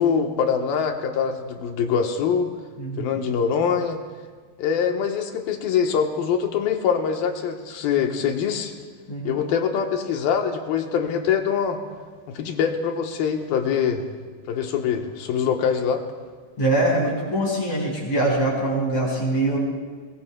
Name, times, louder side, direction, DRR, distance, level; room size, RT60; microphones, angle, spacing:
voice 1, 0.0-2.5 3.0-4.0 4.6-8.7 9.2-11.8 12.3-14.1 14.5-16.0, left 7 dB, 85° left, 4 dB, 2.9 m, -23 dB
voice 2, 2.8-3.2 9.1-9.4 16.6-19.6, right 1 dB, 45° left, -3 dB, 5.7 m, -23 dB
22.0 x 21.0 x 2.2 m, 1.5 s
omnidirectional pair, 4.1 m